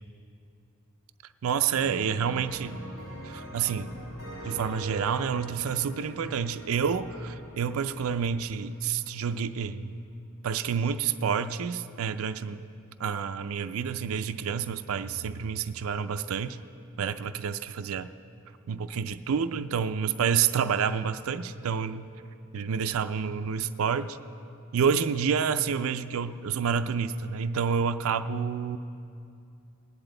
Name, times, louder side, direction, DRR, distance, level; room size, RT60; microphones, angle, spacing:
voice 1, 1.4-2.8 3.2-3.9 4.4-10.0 10.4-12.6 13.0-16.6 17.0-18.1 18.7-22.1 22.5-24.2 24.7-28.8, right 7 dB, 75° right, 10 dB, 0.4 m, -29 dB
sound 1, 1.8-9.4, right 1 dB, 80° left, 1.7 m, -43 dB
20.0 x 9.9 x 3.9 m, 2.5 s
head